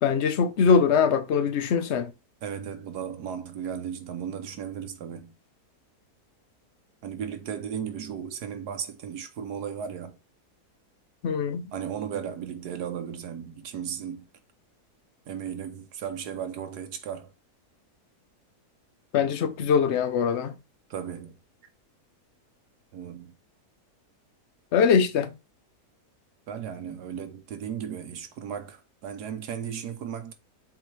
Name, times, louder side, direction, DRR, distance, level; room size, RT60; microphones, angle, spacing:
voice 1, 0.0-2.1 11.2-11.7 19.1-20.6 24.7-25.3, left 6 dB, 55° left, 0.9 m, -22 dB
voice 2, 2.4-5.3 7.0-10.2 11.7-14.3 15.3-17.3 20.9-21.4 22.9-23.3 26.5-30.3, right 8 dB, 80° right, 1.4 m, -35 dB
7.5 x 4.0 x 3.3 m
omnidirectional pair, 1.7 m